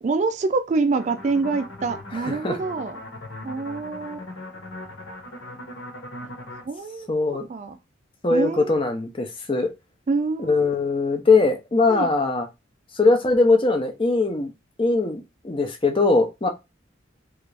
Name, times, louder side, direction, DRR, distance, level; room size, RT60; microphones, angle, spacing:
voice 1, 0.0-3.0 3.4-4.3 6.6-7.1 7.5-7.8 8.3-8.7 10.1-10.8 11.9-12.1, right 4 dB, 35° right, 0.3 m, -26 dB
sound 1, 1.0-6.6, left 1 dB, 65° left, 1.1 m, -39 dB
voice 2, 2.3-2.6 7.1-7.5 8.2-9.7 10.4-12.5 12.9-14.5 14.8-16.5, left 3 dB, 25° left, 0.6 m, -21 dB
3.2 x 2.5 x 3.3 m
head